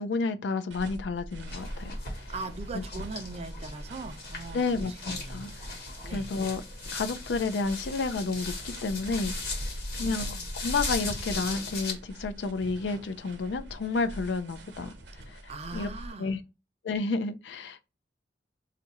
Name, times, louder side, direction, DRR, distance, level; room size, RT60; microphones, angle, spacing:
voice 1, 0.0-2.3 2.7-2.8 4.5-6.6 6.9-9.3 9.6-9.7 9.9-10.3 10.6-14.9 15.3-15.4 15.7-15.9 16.2-16.4 16.8-17.8, left 4 dB, 75° left, 0.4 m, -31 dB
sound 1, 0.7-16.1, equal, 70° right, 0.9 m, -42 dB
sound 2, 1.5-11.9, left 3 dB, 60° left, 1.1 m, -38 dB
voice 2, 2.3-5.5 6.0-6.3 10.0-10.5 15.3-16.4, right 3 dB, 35° right, 0.4 m, -40 dB
2.6 x 2.5 x 4.0 m
head